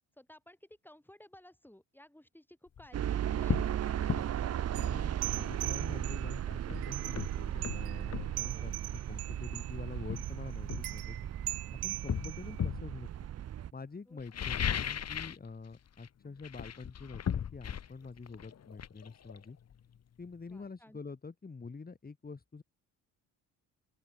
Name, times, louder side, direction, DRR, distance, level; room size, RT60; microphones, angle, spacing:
voice 1, 0.2-4.7 8.5-8.8 14.1-14.2 20.5-21.0, left 1 dB, 5° left, 6.4 m, -56 dB
sound 1, 2.7-2.9 3.5-3.7 4.1-4.3 6.2-6.3 6.7-8.4 9.4-9.6 10.1-11.5 12.1-12.9 14.2-15.5 15.7-16.1 16.4-20.0 20.3-20.4, left 8 dB, 40° left, 1.4 m, -36 dB
sound 2, 2.9-13.7, right 10 dB, 40° right, 0.7 m, -36 dB
sound 3, 4.7-6.4 6.8-7.4 7.6-8.1 8.4-9.8 10.2-10.3 10.7-12.7, right 17 dB, 80° right, 1.8 m, -41 dB
voice 2, 4.8-11.2 11.8-13.1 13.7-19.6 20.2-22.6, left 4 dB, 25° left, 2.5 m, -46 dB
open air
cardioid pair, 80°, 38 cm